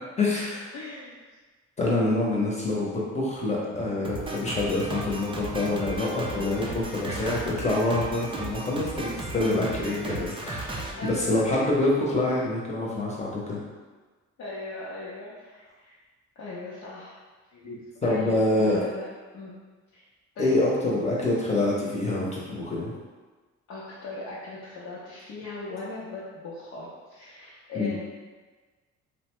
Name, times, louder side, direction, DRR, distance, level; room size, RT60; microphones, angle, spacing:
voice 1, 0.2-0.7 1.8-10.7 11.0-13.6 17.6-18.8 20.4-22.9 27.7-27.9, left 2 dB, 20° left, -4 dB, 0.8 m, -26 dB
voice 2, 0.7-1.2 3.7-3.9 7.0-7.2 11.0-11.4 14.4-16.0 16.4-17.2 17.5-17.7 18.0-19.1 19.3-19.6 19.9-20.0 20.3-20.6 23.7-28.0, left 3 dB, 60° left, -8 dB, 0.6 m, -38 dB
Drum kit, 4.0-11.8, right 2 dB, 20° right, 0.3 m, -36 dB
2.8 x 2.1 x 3.0 m, 1.3 s
cardioid pair, 90°, 30 cm